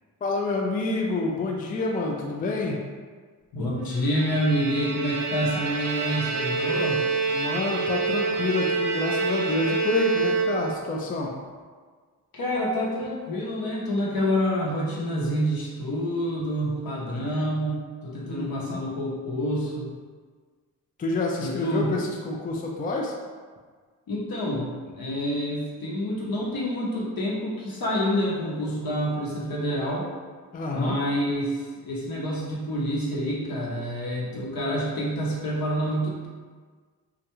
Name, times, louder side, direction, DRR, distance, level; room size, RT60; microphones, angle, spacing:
voice 1, 0.2-2.8 7.3-11.3 18.3-18.8 21.0-23.1 30.5-31.0, left 3 dB, 25° left, -1 dB, 0.4 m, -28 dB
voice 2, 3.5-7.0 12.3-19.9 21.4-21.9 24.1-30.1 30.7-36.3, equal, 60° left, -4 dB, 0.8 m, -27 dB
Bowed string instrument, 3.9-10.9, right 4 dB, 45° right, 0.5 m, -27 dB
2.4 x 2.2 x 2.9 m, 1.5 s
cardioid pair, 55°, 39 cm